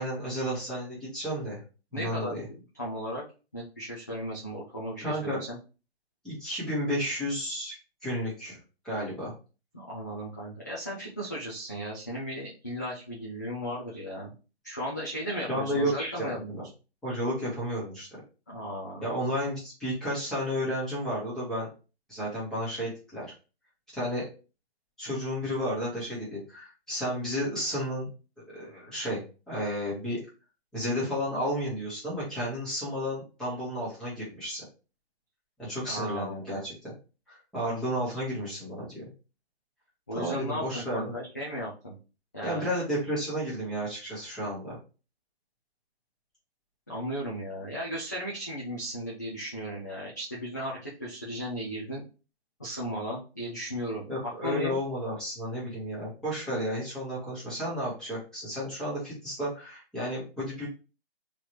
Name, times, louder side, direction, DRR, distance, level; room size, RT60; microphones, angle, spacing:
voice 1, 0.0-1.6 1.9-2.4 5.0-5.4 6.2-7.7 8.0-8.6 8.8-9.3 15.3-16.4 17.0-18.1 19.0-21.7 22.1-23.3 23.9-24.2 25.0-28.1 28.5-29.2 29.5-30.2 30.7-34.6 35.6-36.9 37.3-39.0 40.1-41.0 42.4-44.8 54.1-60.7, equal, ahead, -9 dB, 1.1 m, -32 dB
voice 2, 1.9-3.2 3.5-5.6 9.7-14.3 14.6-16.6 18.5-19.1 35.8-36.4 40.1-41.9 42.3-42.7 46.9-52.0 52.6-54.8, equal, 15° left, -7 dB, 0.4 m, -36 dB
3.8 x 3.1 x 2.9 m, 0.33 s
hypercardioid pair, 160°, 33 cm